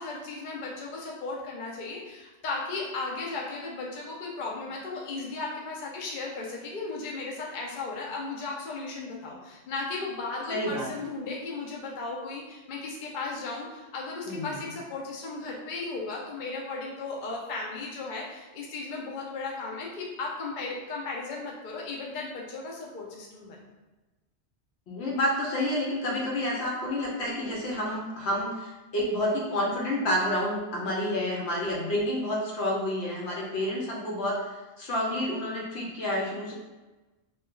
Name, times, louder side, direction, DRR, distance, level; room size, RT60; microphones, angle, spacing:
voice 1, 0.0-23.6, left 3 dB, 55° left, -2 dB, 0.6 m, -36 dB
voice 2, 10.5-10.9 14.2-14.6 24.9-34.4 34.8-36.5, left 1 dB, 70° left, -3 dB, 1.0 m, -29 dB
2.6 x 2.2 x 3.6 m, 1.1 s
omnidirectional pair, 1.2 m